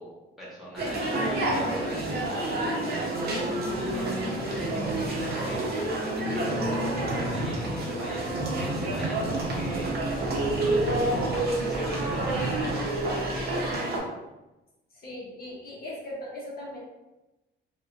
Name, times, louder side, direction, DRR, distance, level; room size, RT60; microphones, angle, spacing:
voice 1, 0.0-3.2 3.6-14.0, equal, ahead, -8 dB, 1.1 m, -41 dB
sound 1, 0.8-14.0, right 1 dB, 50° right, 0.7 m, -28 dB
sound 2, 9.3-13.7, right 2 dB, 30° right, 1.0 m, -38 dB
voice 2, 14.9-16.8, left 1 dB, 50° left, -5 dB, 0.7 m, -39 dB
2.5 x 2.2 x 2.5 m, 1.0 s
cardioid pair, 90°, 20 cm